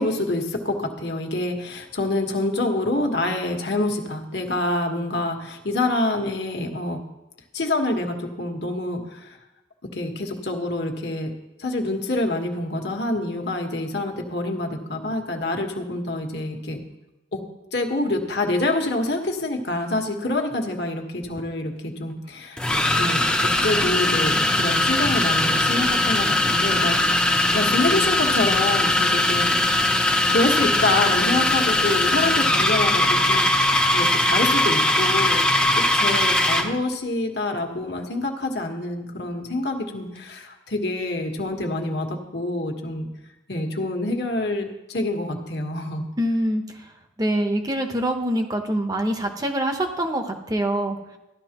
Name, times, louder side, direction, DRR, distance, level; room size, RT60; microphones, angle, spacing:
voice 1, 0.0-7.0 7.5-9.4 9.8-11.3 11.6-16.8 17.3-17.4 17.7-22.6 22.9-29.9 30.3-33.5 33.9-35.4 35.7-43.1 43.5-46.1, left 2 dB, 65° left, 2 dB, 1.5 m, -26 dB
sound 1, 21.2-21.4 22.6-36.7, left 1 dB, 5° left, 0.7 m, -20 dB
voice 2, 46.2-46.6 47.2-51.0, right 1 dB, 20° right, 4 dB, 0.9 m, -24 dB
14.0 x 11.5 x 3.0 m, 0.98 s
head